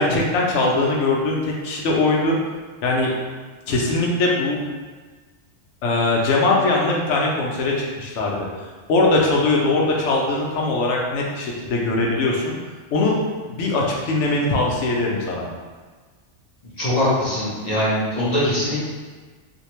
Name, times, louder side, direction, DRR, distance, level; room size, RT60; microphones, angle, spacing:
voice 1, 0.0-2.4 2.8-3.1 3.7-4.6 5.8-8.4 8.9-12.5 12.9-13.1 13.5-15.5, left 2 dB, 75° left, -2 dB, 0.9 m, -21 dB
voice 2, 16.8-18.8, left 1 dB, 45° left, -9 dB, 0.6 m, -21 dB
2.6 x 2.1 x 2.9 m, 1.4 s
omnidirectional pair, 1.3 m